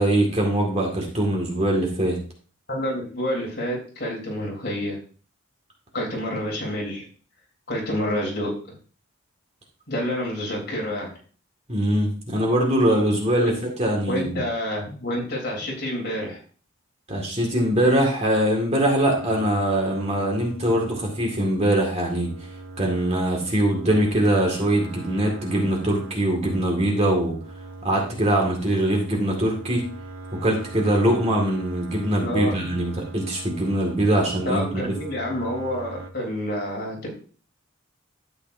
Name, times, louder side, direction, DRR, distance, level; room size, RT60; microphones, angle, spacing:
voice 1, 0.0-2.2 11.7-14.4 17.1-22.3 22.8-27.4 27.8-29.8 30.4-34.9, right 1 dB, 30° right, 0 dB, 2.0 m, -22 dB
voice 2, 2.7-5.0 5.9-7.1 7.7-8.8 9.9-11.2 13.4-13.5 14.1-16.4 32.2-32.7 34.5-37.1, equal, 50° left, -2 dB, 3.7 m, -28 dB
sound 1, 19.2-36.1, right 2 dB, 70° right, 1.2 m, -40 dB
12.0 x 8.5 x 2.7 m, 0.40 s
head